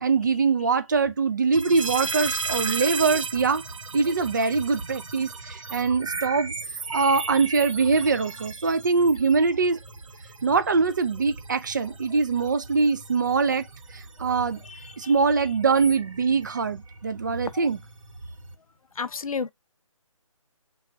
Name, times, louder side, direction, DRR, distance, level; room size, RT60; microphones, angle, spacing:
voice 1, 0.0-3.6 3.9-6.5 6.9-9.8 10.4-13.7 13.9-14.6 15.0-17.8, right 4 dB, 35° right, 0.4 m, -23 dB
sound 1, 1.5-18.6, right 4 dB, 65° right, 0.7 m, -36 dB
voice 2, 14.7-15.1 17.5-17.7 19.0-19.5, left 5 dB, 80° left, 0.4 m, -32 dB
3.3 x 2.3 x 3.8 m
figure-of-eight pair, 150°, 18 cm